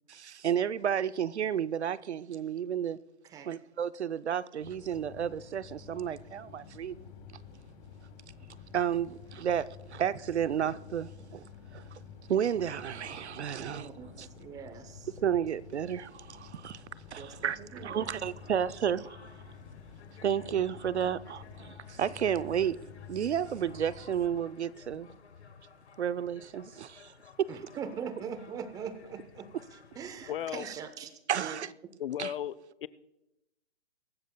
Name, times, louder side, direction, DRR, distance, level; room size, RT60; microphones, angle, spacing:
voice 1, 0.1-3.0 3.5-7.1 8.7-11.5 11.7-11.8 12.3-13.9 14.2-14.3 15.2-16.8 17.1-19.3 20.2-22.8 23.1-25.1 26.0-27.1 27.4-27.5 30.6-30.7 31.3-31.7 32.2-32.3, right 9 dB, 85° right, 0.7 m, -32 dB
voice 2, 3.2-3.6 13.6-15.1 17.2-18.1 27.5-29.5 30.0-31.6, right 7 dB, 10° right, 0.7 m, -42 dB
sound 1, 4.6-24.4, left 6 dB, 35° left, 2.8 m, -50 dB
sound 2, 17.9-30.9, left 6 dB, 85° left, 1.3 m, -56 dB
voice 3, 30.3-30.7 32.0-32.5 32.8-32.9, left 10 dB, 55° left, 0.6 m, -34 dB
23.5 x 13.0 x 2.3 m
hypercardioid pair, 140°, 33 cm